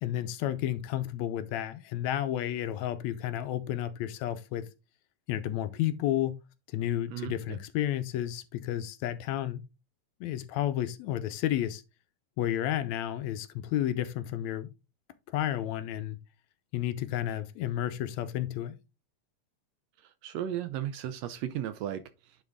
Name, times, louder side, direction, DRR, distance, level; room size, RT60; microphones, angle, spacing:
voice 1, 0.0-4.7 5.3-6.4 6.7-9.6 10.2-11.8 12.4-14.7 15.3-16.2 16.7-18.8, left 12 dB, 75° left, 1.8 m, -31 dB
voice 2, 7.1-7.6 20.0-22.4, right 11 dB, 80° right, 1.6 m, -36 dB
10.0 x 3.9 x 3.6 m
omnidirectional pair, 3.4 m